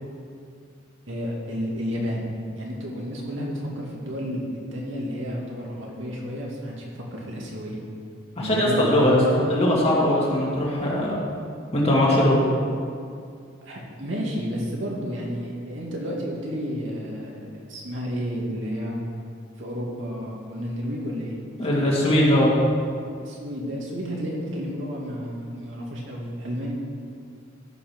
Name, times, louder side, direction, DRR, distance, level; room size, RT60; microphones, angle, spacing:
voice 1, 1.1-4.4 4.7-7.8 8.4-9.4 13.6-19.0 19.6-21.4 21.7-21.8 23.2-26.7, equal, 70° right, -3 dB, 2.4 m, -31 dB
voice 2, 8.4-11.2 11.7-12.4 21.6-22.5, left 1 dB, 35° left, -5 dB, 2.7 m, -20 dB
14.5 x 5.8 x 6.2 m, 2.3 s
head